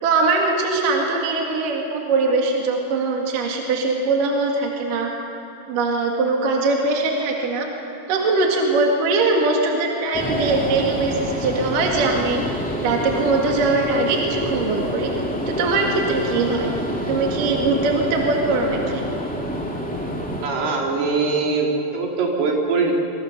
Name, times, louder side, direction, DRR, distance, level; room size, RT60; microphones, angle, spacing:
voice 1, 0.0-5.1 5.7-7.7 8.1-12.4 12.8-15.1 15.5-16.7 17.1-19.0, right 3 dB, 60° right, 0 dB, 3.5 m, -21 dB
sound 1, 10.1-20.5, equal, 5° left, 1.3 m, -27 dB
voice 2, 20.4-22.9, right 4 dB, 75° right, 0 dB, 4.8 m, -22 dB
25.5 x 23.0 x 6.7 m, 2.9 s
omnidirectional pair, 4.6 m